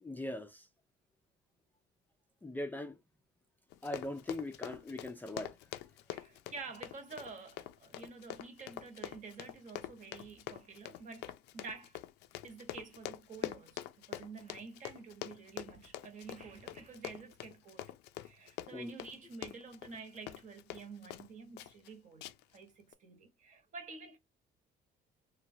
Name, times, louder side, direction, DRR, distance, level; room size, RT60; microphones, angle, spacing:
voice 1, 0.0-0.7 2.4-3.0 3.8-5.5 18.7-18.9, left 1 dB, 10° left, 0.4 m, -40 dB
Run, 3.7-21.3 21.6-21.9 22.2-22.6 22.9-23.0, left 14 dB, 90° left, 0.4 m, -45 dB
voice 2, 6.1-12.0 12.4-17.9 18.2-24.2, right 4 dB, 50° right, 1.0 m, -49 dB
3.1 x 2.2 x 2.6 m
cardioid pair, 110°, 17 cm